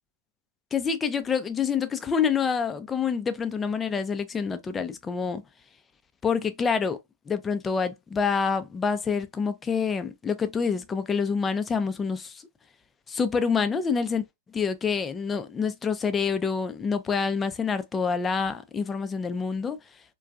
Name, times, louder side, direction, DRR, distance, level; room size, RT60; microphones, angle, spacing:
voice 1, 0.7-5.4 6.2-7.0 7.3-12.5 13.1-14.3 14.5-19.8, left 6 dB, 20° left, 0.4 m, -27 dB
2.6 x 2.2 x 2.2 m
hypercardioid pair, 115°, 0 cm